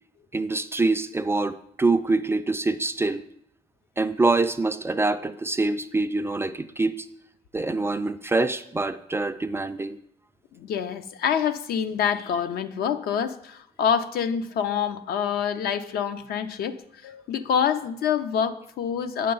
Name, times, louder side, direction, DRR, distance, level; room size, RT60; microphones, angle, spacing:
voice 1, 0.3-3.2 4.0-7.1 7.5-10.0, right 3 dB, 15° right, 9 dB, 0.3 m, -25 dB
voice 2, 10.5-16.8 17.0-19.3, left 7 dB, 65° left, 10 dB, 0.6 m, -26 dB
8.6 x 6.6 x 3.8 m, 0.73 s
cardioid pair, 110°, 17 cm